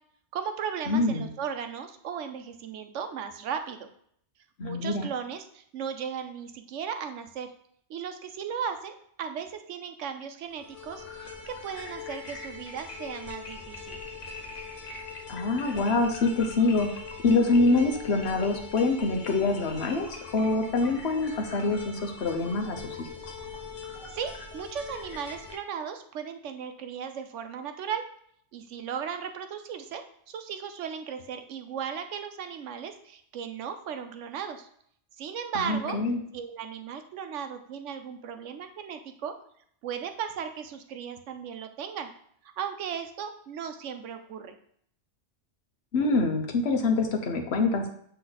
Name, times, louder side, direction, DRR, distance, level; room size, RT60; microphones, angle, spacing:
voice 1, 0.3-3.9 4.6-7.5 7.9-14.0 24.1-28.1 28.5-34.7 35.2-36.0 36.3-39.4 39.8-42.1 42.4-44.6, right 7 dB, 80° right, 7 dB, 1.0 m, -36 dB
voice 2, 0.9-1.3 4.6-5.1 15.3-16.9 17.2-23.3 35.5-36.2 45.9-47.9, left 3 dB, 65° left, 3 dB, 1.1 m, -25 dB
sound 1, 10.5-25.6, left 4 dB, 90° left, 1.5 m, -41 dB
7.7 x 3.4 x 3.9 m, 0.65 s
omnidirectional pair, 1.2 m